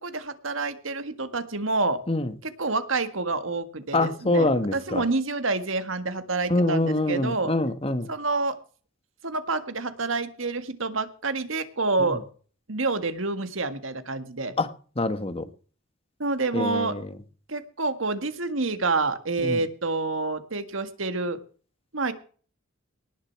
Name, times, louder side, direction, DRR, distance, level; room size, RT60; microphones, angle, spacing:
voice 1, 0.0-2.0 2.4-7.5 8.1-8.6 9.2-12.2 12.7-14.5 16.2-17.0 17.5-21.4 21.9-22.1, right 3 dB, 75° right, 10 dB, 1.9 m, -28 dB
voice 2, 3.9-5.0 6.5-8.1 12.0-12.2 14.6-15.4 16.5-17.1 19.4-19.6, left 2 dB, 30° left, 10 dB, 1.5 m, -25 dB
19.5 x 6.8 x 6.0 m, 0.40 s
head